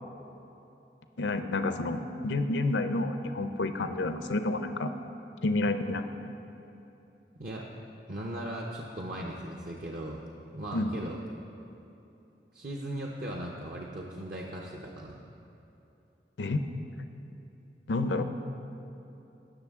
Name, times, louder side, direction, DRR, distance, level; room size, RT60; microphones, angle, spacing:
voice 1, 1.2-4.9 5.4-6.0 10.7-10.9 16.4-16.6 17.9-18.2, left 2 dB, 80° left, 8 dB, 0.6 m, -29 dB
voice 2, 8.1-10.2 10.5-11.2 12.5-15.2, right 1 dB, 50° right, -1 dB, 0.7 m, -38 dB
17.5 x 6.4 x 3.6 m, 2.9 s
head